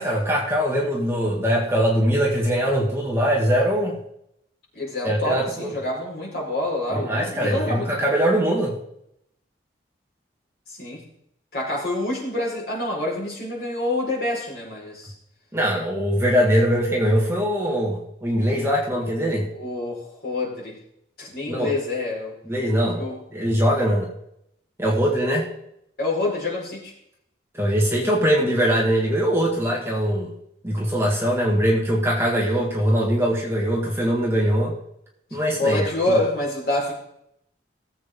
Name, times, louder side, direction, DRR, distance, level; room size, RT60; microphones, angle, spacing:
voice 1, 0.0-4.0 5.0-5.7 6.9-8.7 15.5-19.5 21.5-21.7 22.5-23.0 23.3-24.1 24.8-25.5 27.5-30.3 30.6-34.7 35.3-36.2, equal, 15° right, -3 dB, 1.9 m, -22 dB
voice 2, 4.7-8.1 10.8-11.0 11.5-15.1 19.6-20.8 21.2-22.3 23.0-23.2 26.0-26.9 29.5-29.6 35.5-36.9, left 2 dB, 55° left, -4 dB, 4.9 m, -27 dB
18.0 x 7.9 x 3.8 m, 0.76 s
head